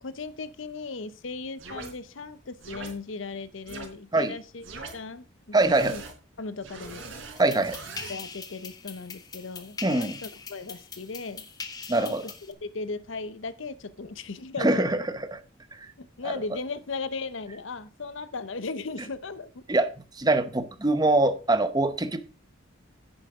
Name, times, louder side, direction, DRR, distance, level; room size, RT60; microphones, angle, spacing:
voice 1, 0.0-4.7 4.9-6.0 6.4-7.1 8.1-11.4 12.0-12.1 12.6-14.9 16.0-19.6, left 4 dB, 75° left, 0.8 m, -37 dB
sound 1, 1.6-1.9 2.6-2.9 3.7-3.9 4.6-4.9 5.6-6.1 6.6-8.1, right 3 dB, 85° right, 4.1 m, -41 dB
voice 2, 5.5-6.0 7.4-7.8 9.8-10.2 11.9-12.3 14.6-15.0 15.3-15.4 16.2-16.3 19.7-19.9 20.2-22.2, right 2 dB, 20° right, 0.8 m, -23 dB
sound 2, 7.4-12.5, left 5 dB, 20° left, 1.2 m, -41 dB
10.5 x 9.7 x 3.7 m
head